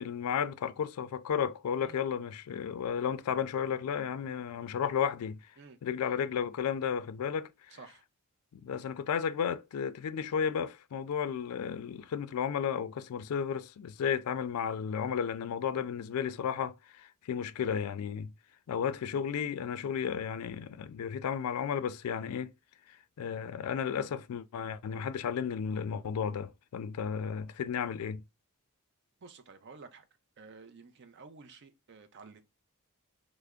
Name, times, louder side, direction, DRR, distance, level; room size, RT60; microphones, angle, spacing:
voice 1, 0.0-5.4 5.8-7.8 8.5-18.3 18.7-22.5 22.9-28.2, left 7 dB, 80° left, 0.3 m, -33 dB
voice 2, 5.6-6.2 7.7-8.0 29.2-30.1 30.4-32.4, right 4 dB, 50° right, 0.5 m, -52 dB
3.3 x 2.0 x 3.5 m
head